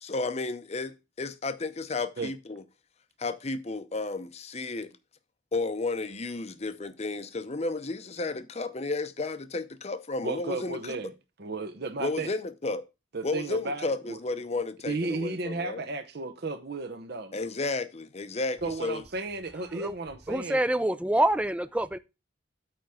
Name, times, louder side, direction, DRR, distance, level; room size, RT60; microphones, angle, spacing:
voice 1, 0.0-2.6 3.2-4.9 5.5-11.0 12.0-12.8 13.2-15.8 17.3-19.0, left 3 dB, 30° left, 0.7 m, -32 dB
voice 2, 10.2-11.1 11.4-12.3 13.1-14.2 14.9-17.4 18.6-20.6, right 3 dB, 50° right, 0.7 m, -34 dB
voice 3, 20.3-22.0, right 1 dB, 5° right, 0.4 m, -26 dB
8.8 x 3.5 x 6.3 m
head